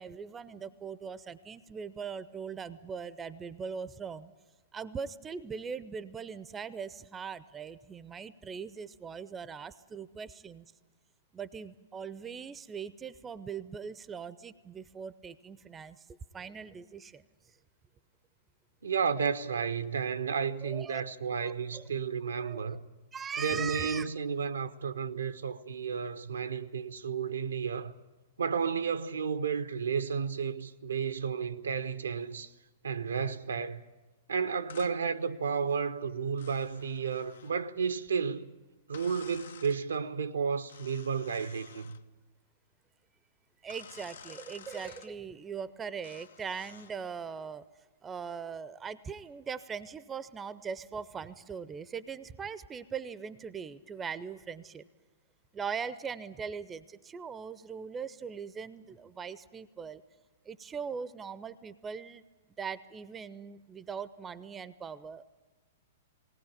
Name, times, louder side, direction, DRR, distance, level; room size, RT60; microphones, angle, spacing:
voice 1, 0.0-4.3 4.7-10.6 11.3-17.2 20.6-21.0 21.4-21.9 22.4-22.8 23.1-24.1 43.6-47.7 48.0-54.9 55.5-60.0 60.5-62.2 62.6-65.2, right 6 dB, 15° right, 0.7 m, -40 dB
voice 2, 18.8-22.8 23.4-27.9 28.4-32.5 32.8-33.8 34.3-38.5 38.9-42.0, right 6 dB, 70° right, 0.9 m, -32 dB
sound 1, 34.7-35.0 36.4-37.6 38.9-39.8 40.7-42.0 43.7-45.1 46.0-47.0, left 7 dB, 65° left, 0.7 m, -51 dB
19.5 x 19.0 x 8.8 m
figure-of-eight pair, 105°, 0 cm